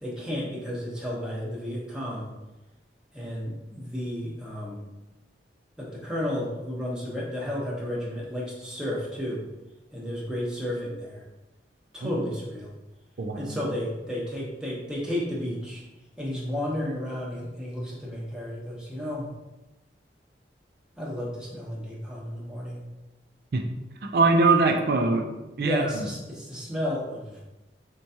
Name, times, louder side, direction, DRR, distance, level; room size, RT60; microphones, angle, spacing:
voice 1, 0.0-2.3 3.1-4.8 5.8-9.4 9.9-11.2 11.9-12.7 13.4-15.8 16.2-19.3 21.0-22.8 25.6-27.4, left 1 dB, 5° right, -6 dB, 0.7 m, -32 dB
voice 2, 13.2-13.6 23.5-23.6 24.1-25.2 25.6-26.1, right 3 dB, 55° right, 4 dB, 0.4 m, -22 dB
4.4 x 2.2 x 2.7 m, 1.0 s
head